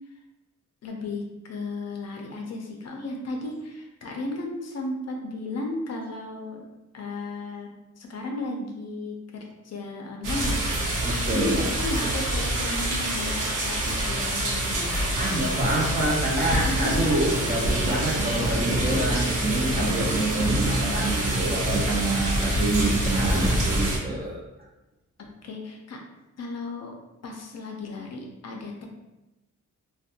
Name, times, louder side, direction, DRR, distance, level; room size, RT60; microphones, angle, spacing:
voice 1, 0.8-6.7 6.9-7.7 8.0-15.0 16.5-17.2 17.7-18.4 19.3-19.5 25.2-26.0 26.4-27.0 27.2-28.9, left 2 dB, 55° left, 1 dB, 0.5 m, -34 dB
sound 1, 10.2-24.0, right 1 dB, 80° right, 0.7 m, -26 dB
voice 2, 11.0-11.6 15.2-24.4, right 2 dB, 30° right, -2 dB, 0.5 m, -27 dB
2.5 x 2.2 x 2.6 m, 1.0 s
wide cardioid pair, 140°, 31 cm